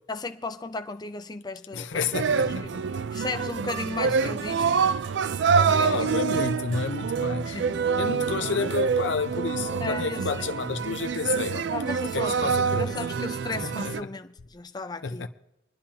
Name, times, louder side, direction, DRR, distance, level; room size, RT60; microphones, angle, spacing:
voice 1, 0.1-2.0 2.3-2.4 3.1-4.8 5.5-6.1 6.9-7.1 7.5-7.9 9.8-10.5 11.7-15.3, left 3 dB, 20° left, 0.5 m, -35 dB
voice 2, 1.7-2.8 4.0-4.3 5.8-7.6 8.0-12.9 13.5-13.7 14.0-14.1 15.0-15.3, left 5 dB, 90° left, 0.6 m, -31 dB
sound 1, 2.1-14.0, right 6 dB, 70° right, 0.4 m, -26 dB
28.0 x 10.0 x 2.8 m
head